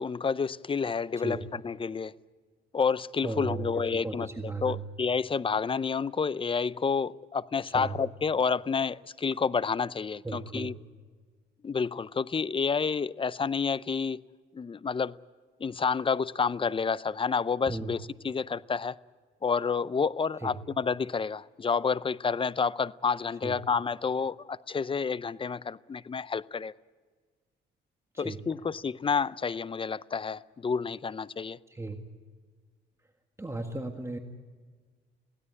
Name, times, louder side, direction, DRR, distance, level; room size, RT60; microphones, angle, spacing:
voice 1, 0.0-2.1 2.7-4.3 4.6-10.7 11.6-14.2 14.5-15.1 15.6-19.0 19.4-26.7 28.2-31.6, left 5 dB, 25° left, 19 dB, 0.6 m, -29 dB
voice 2, 3.2-4.8 7.7-8.0 10.2-10.7 17.7-17.9 20.4-20.5 23.4-23.6 28.1-28.4 31.7-32.0 33.4-34.2, right 3 dB, 15° right, 4 dB, 1.8 m, -36 dB
22.5 x 16.5 x 9.8 m, 1.5 s
cardioid pair, 90°, 20 cm